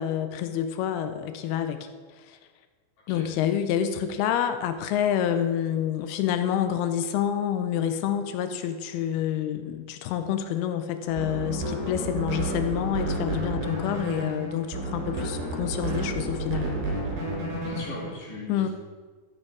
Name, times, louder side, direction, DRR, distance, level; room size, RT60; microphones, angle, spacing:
voice 1, 0.0-1.9 2.2-2.4 3.1-16.7 18.5-18.7, left 9 dB, 85° left, 8 dB, 2.5 m, -28 dB
sound 1, 11.1-18.2, right 2 dB, 65° right, 5.4 m, -31 dB
voice 2, 17.6-18.7, left 2 dB, 50° left, -7 dB, 4.9 m, -39 dB
13.5 x 7.2 x 4.8 m, 1.4 s
omnidirectional pair, 4.6 m